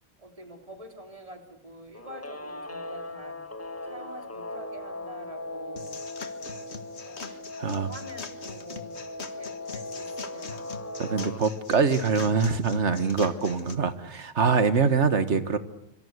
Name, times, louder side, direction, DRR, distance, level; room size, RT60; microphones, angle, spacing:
voice 1, 0.2-3.4 3.9-6.0 7.0-7.4 7.7-9.0 9.4-10.6, right 1 dB, 30° right, 5 dB, 3.6 m, -46 dB
Guitar, 1.9-11.4, left 2 dB, 15° left, 1.0 m, -39 dB
sound 1, 5.8-13.7, left 5 dB, 70° left, 1.9 m, -42 dB
voice 2, 7.6-7.9 11.0-15.6, right 5 dB, 80° right, 12 dB, 1.9 m, -24 dB
25.5 x 24.5 x 8.1 m, 0.77 s
omnidirectional pair, 1.2 m